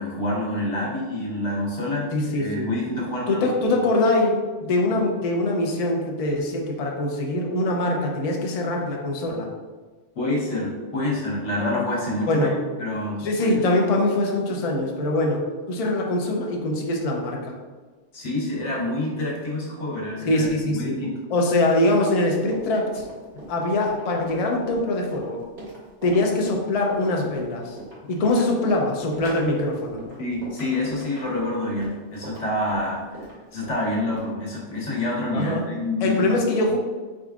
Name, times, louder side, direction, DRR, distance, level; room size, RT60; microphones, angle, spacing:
voice 1, 0.0-2.1 2.4-3.8 10.1-12.5 12.8-13.6 18.1-21.1 30.2-33.3 33.5-36.3, left 1 dB, 80° left, -4 dB, 1.3 m, -27 dB
voice 2, 2.1-2.7 3.3-9.5 12.3-12.5 13.2-17.5 20.2-21.0 21.3-23.0 23.5-25.4 26.0-27.8 28.1-30.0 35.3-35.6 36.0-36.8, left 2 dB, 45° left, 0 dB, 0.5 m, -23 dB
Run, 22.2-34.3, right 1 dB, 55° right, 1.9 m, -40 dB
4.5 x 3.8 x 2.4 m, 1.4 s
omnidirectional pair, 1.2 m